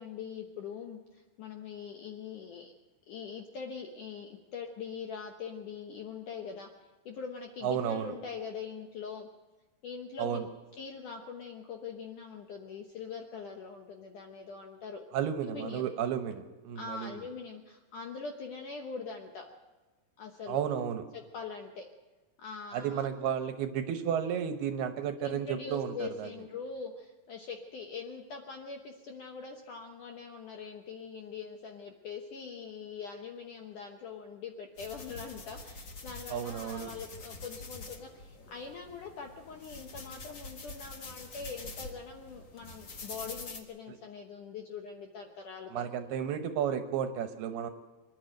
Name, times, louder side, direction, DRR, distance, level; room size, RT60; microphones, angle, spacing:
voice 1, 0.0-2.7 3.1-6.7 7.1-9.3 9.8-10.4 10.8-15.0 15.4-15.9 16.8-19.5 20.2-20.6 21.1-21.9 22.4-23.1 25.2-45.9, left 5 dB, 70° left, 3 dB, 1.9 m, -43 dB
voice 2, 7.6-8.1 10.2-10.5 15.1-17.1 20.5-21.0 22.7-26.3 36.3-36.9 43.9-44.0 45.7-47.7, right 8 dB, 75° right, 8 dB, 2.6 m, -32 dB
sound 1, 34.8-43.6, left 3 dB, 85° left, 1.0 m, -46 dB
26.0 x 11.5 x 9.1 m, 1.2 s
omnidirectional pair, 5.2 m